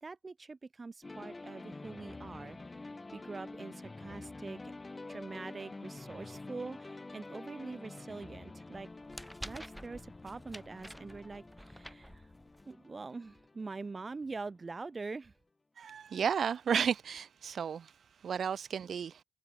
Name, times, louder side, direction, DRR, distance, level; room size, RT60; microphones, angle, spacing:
voice 1, 0.0-2.6 3.1-4.7 5.1-8.9 9.4-12.2 12.7-15.3, right 3 dB, 25° right, 1.7 m, -44 dB
sound 1, 1.0-14.8, left 3 dB, 20° left, 2.8 m, -48 dB
sound 2, 8.7-12.7, equal, ahead, 2.6 m, -49 dB
voice 2, 15.8-19.2, right 7 dB, 50° right, 0.6 m, -33 dB
cardioid pair, 90°, 0 cm